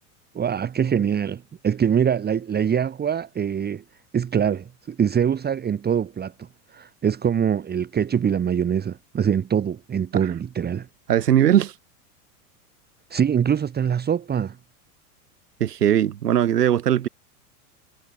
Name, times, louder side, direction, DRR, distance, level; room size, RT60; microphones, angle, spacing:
voice 1, 0.3-3.8 4.1-10.9 13.1-14.6, right 8 dB, 20° right, 1.5 m, -24 dB
voice 2, 11.1-11.7 15.6-17.1, right 10 dB, 80° right, 2.5 m, -19 dB
hypercardioid pair, 95°, 46 cm